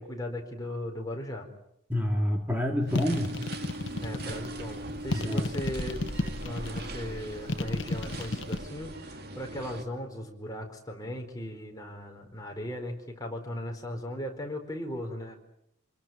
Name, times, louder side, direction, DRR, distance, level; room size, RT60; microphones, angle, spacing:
voice 1, 0.0-1.5 4.0-15.4, left 1 dB, 20° left, 2 dB, 4.4 m, -37 dB
voice 2, 1.9-3.4 5.1-5.5, left 1 dB, 10° right, 2 dB, 2.4 m, -27 dB
sound 1, 2.9-4.5 5.1-6.9 7.5-8.6, left 2 dB, 65° left, 1.3 m, -31 dB
sound 2, 2.9-9.8, right 1 dB, 50° right, 2.4 m, -40 dB
sound 3, 4.3-8.9, equal, 40° left, 4.2 m, -43 dB
28.0 x 21.5 x 9.4 m, 0.79 s
head